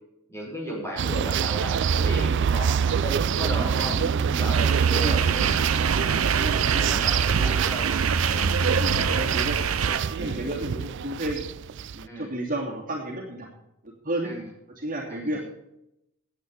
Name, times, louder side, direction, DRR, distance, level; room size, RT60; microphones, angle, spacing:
voice 1, 0.3-4.0 4.4-5.3 5.7-6.2 6.5-7.9 8.3-8.6 10.2-10.5 12.1-12.3 14.2-14.4 15.1-15.3, right 1 dB, 15° left, -3 dB, 5.4 m, -35 dB
sound 1, 1.0-12.1, right 7 dB, 60° right, 0.4 m, -25 dB
sound 2, 3.4-10.4, equal, 50° left, 2.7 m, -42 dB
sound 3, 4.5-10.0, right 6 dB, 90° right, 0.8 m, -26 dB
voice 2, 4.9-5.5 6.3-7.6 8.8-11.5 11.8-13.5 13.8-14.3 14.8-15.5, right 1 dB, 40° right, -2 dB, 2.6 m, -33 dB
10.5 x 9.0 x 6.9 m, 0.84 s
head